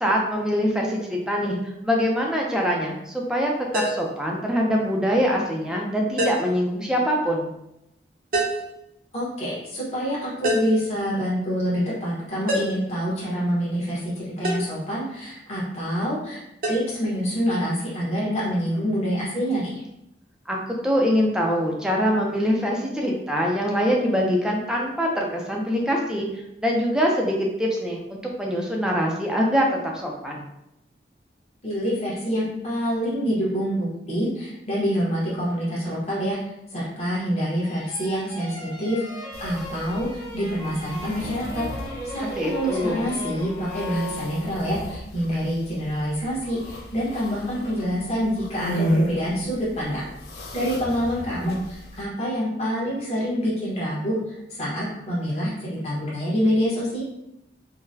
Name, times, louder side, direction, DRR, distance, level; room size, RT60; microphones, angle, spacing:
voice 1, 0.0-7.5 20.5-26.3 26.6-30.4 42.2-43.1, equal, 5° right, -1 dB, 0.4 m, -24 dB
sound 1, 3.7-4.1 6.2-6.6 8.3-8.7 10.4-10.8 12.5-12.9 14.4-14.7 16.6-16.8, equal, 50° right, 0.7 m, -25 dB
voice 2, 9.1-16.4 16.7-19.8 31.6-36.4 36.7-41.6 42.0-50.1 50.3-57.0, equal, 35° left, -8 dB, 1.1 m, -26 dB
sound 2, 37.6-44.8, left 1 dB, 10° left, 0.9 m, -37 dB
sound 3, 39.3-52.0, equal, 65° left, 0.4 m, -34 dB
3.8 x 2.1 x 2.7 m, 0.85 s
head